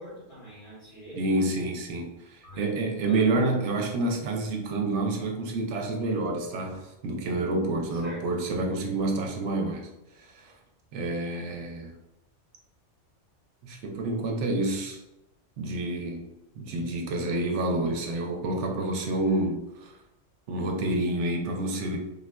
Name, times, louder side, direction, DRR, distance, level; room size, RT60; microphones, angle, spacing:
voice 1, 0.0-1.2 2.4-2.8 3.0-3.4 7.9-8.3, right 1 dB, 45° left, -8 dB, 1.6 m, -43 dB
voice 2, 1.2-2.1 2.3-9.9 10.3-10.5 10.9-11.9 13.6-15.0 15.6-16.2 16.6-19.9 20.5-22.0, right 2 dB, 90° right, 2 dB, 0.9 m, -28 dB
3.7 x 2.4 x 2.2 m, 0.95 s
omnidirectional pair, 1.2 m